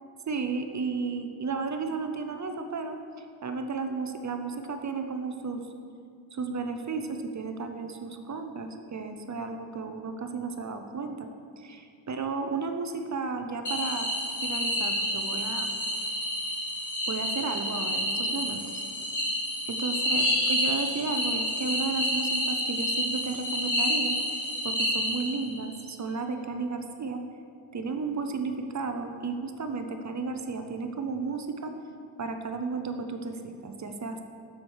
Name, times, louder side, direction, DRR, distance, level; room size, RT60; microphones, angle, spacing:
voice 1, 0.3-3.0 3.4-5.7 6.3-11.3 11.6-14.1 14.4-15.7 17.1-18.8 19.7-24.2 24.6-27.2 27.7-31.7 32.2-34.2, right 4 dB, 35° right, 6 dB, 0.7 m, -33 dB
sound 1, 13.6-25.6, equal, 40° left, 2.4 m, -29 dB
8.0 x 7.2 x 6.2 m, 2.4 s
wide cardioid pair, 145°, 47 cm